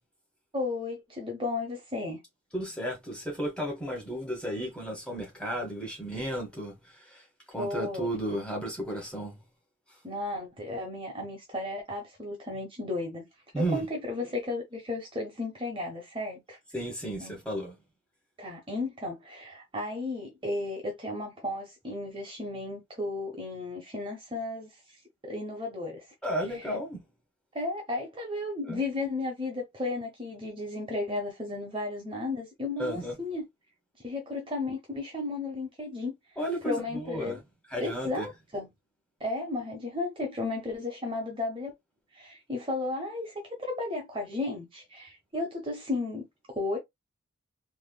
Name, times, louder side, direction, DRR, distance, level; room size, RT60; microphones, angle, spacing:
voice 1, 0.5-2.2 7.6-8.1 10.0-13.3 13.7-16.6 17.2-17.4 18.4-26.1 26.5-26.7 27.5-33.4 34.0-36.1 36.6-37.4 37.8-38.7 39.2-41.7 42.1-46.8, left 2 dB, 25° right, 0.9 m, -34 dB
voice 2, 2.5-9.4 13.5-13.9 16.7-17.7 26.2-27.0 28.6-28.8 32.8-33.1 36.4-37.4 37.7-38.3, right 1 dB, 5° left, 1.4 m, -33 dB
3.5 x 2.8 x 2.3 m
head